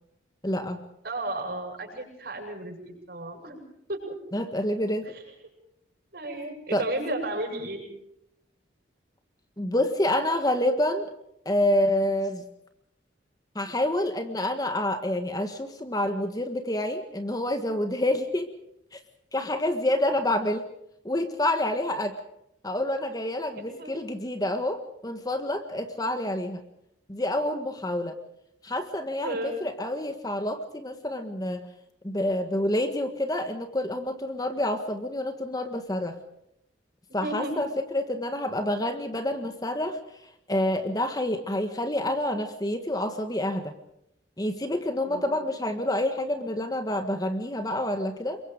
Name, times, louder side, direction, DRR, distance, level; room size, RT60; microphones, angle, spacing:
voice 1, 0.4-0.8 4.3-5.1 6.7-6.9 9.6-11.1 11.4-12.4 13.5-18.5 18.9-19.0 19.3-20.7 21.0-22.2 22.6-26.6 27.1-28.2 28.6-31.7 32.0-36.2 37.1-40.0 40.5-43.7 44.4-48.4, left 1 dB, 20° left, 7 dB, 1.6 m, -28 dB
voice 2, 1.0-3.6 3.9-4.2 5.1-5.2 6.1-7.9 23.5-23.9 25.9-26.2 29.2-29.6 37.1-37.7 45.0-45.4, right 1 dB, 55° right, 2 dB, 8.0 m, -34 dB
28.0 x 23.5 x 5.1 m, 0.77 s
head